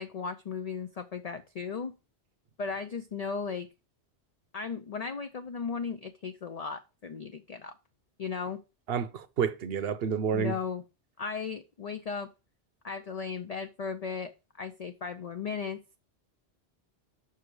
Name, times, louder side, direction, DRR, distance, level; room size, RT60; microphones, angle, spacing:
voice 1, 0.0-1.9 2.6-3.7 4.5-7.7 8.2-8.6 10.3-10.8 11.2-12.3 12.8-14.3 14.6-15.8, left 5 dB, 45° left, 0.5 m, -36 dB
voice 2, 8.9-10.5, right 7 dB, 65° right, 0.9 m, -29 dB
6.9 x 6.0 x 4.7 m
omnidirectional pair, 1.1 m